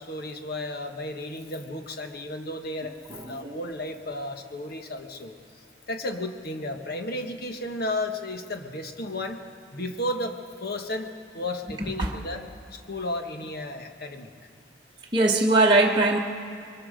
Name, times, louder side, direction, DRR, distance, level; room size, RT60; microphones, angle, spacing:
voice 1, 0.0-3.0 3.3-9.4 9.7-12.4 12.7-14.3, left 1 dB, 55° left, 5 dB, 1.4 m, -33 dB
voice 2, 3.1-3.5 11.8-12.1 15.1-16.2, right 2 dB, 25° right, -2 dB, 1.0 m, -21 dB
24.0 x 23.0 x 5.1 m, 2.4 s
head